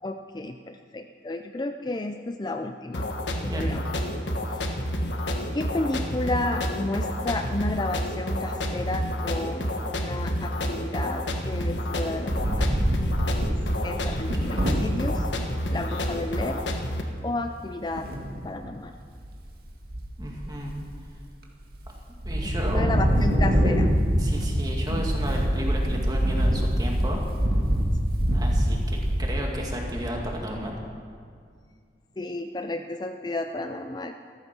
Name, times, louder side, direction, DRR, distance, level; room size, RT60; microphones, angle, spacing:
voice 1, 0.0-3.1 3.4-3.8 4.5-4.7 5.5-12.7 13.8-15.3 15.7-16.6 17.2-18.1 18.4-18.9 22.4-23.9 32.2-34.1, left 2 dB, 25° left, 6 dB, 0.4 m, -32 dB
sound 1, 2.9-17.0, equal, 85° left, 1.4 m, -29 dB
Wind, 12.1-15.2 15.8-15.9 16.1-16.4 17.9-18.5 19.0-19.5 19.8-21.0 21.5-21.9 22.2-30.4, equal, 55° right, 1.9 m, -25 dB
voice 2, 14.1-14.6 20.2-20.7 22.2-22.9 24.2-27.2 28.3-30.7, equal, 20° right, -1 dB, 2.2 m, -33 dB
14.5 x 14.0 x 6.1 m, 2.2 s
head